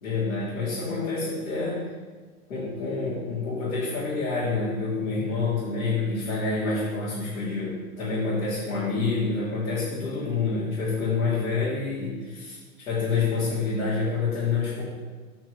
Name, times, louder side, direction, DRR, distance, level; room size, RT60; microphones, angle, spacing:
voice 1, 0.0-1.9 2.5-14.8, left 4 dB, 90° left, -7 dB, 2.8 m, -27 dB
8.7 x 4.5 x 6.8 m, 1.4 s
supercardioid pair, 130°, 42 cm